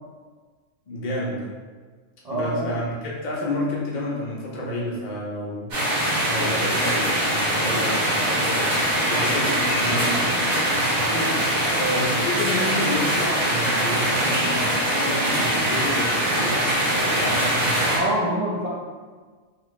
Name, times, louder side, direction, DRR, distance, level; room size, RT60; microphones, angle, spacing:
voice 1, 0.9-1.5 2.3-5.7 6.3-10.3 11.7-17.5, left 1 dB, 70° left, -4 dB, 0.4 m, -30 dB
voice 2, 2.2-2.8 9.1-9.3 11.0-11.4 17.8-18.7, right 1 dB, 70° right, -8 dB, 0.4 m, -27 dB
sound 1, 5.7-18.0, right 1 dB, 90° right, 1.5 m, -22 dB
3.2 x 2.5 x 3.0 m, 1.5 s
omnidirectional pair, 1.4 m